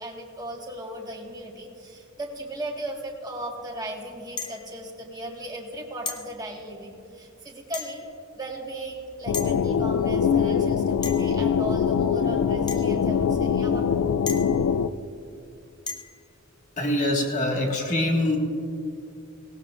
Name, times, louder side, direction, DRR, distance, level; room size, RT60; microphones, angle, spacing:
voice 1, 0.0-8.1 8.4-13.8, right 1 dB, 20° right, 0 dB, 1.6 m, -37 dB
sound 1, 4.4-4.7 6.1-6.3 7.7-8.1 9.3-9.5 11.0-11.4 12.7-12.9 14.3-14.7 15.9-16.2, left 5 dB, 20° left, 0.8 m, -35 dB
sound 2, 9.3-14.9, left 7 dB, 70° left, 0.4 m, -23 dB
voice 2, 16.8-18.4, left 1 dB, 35° left, 0 dB, 1.8 m, -24 dB
18.5 x 17.5 x 2.5 m, 2.5 s
head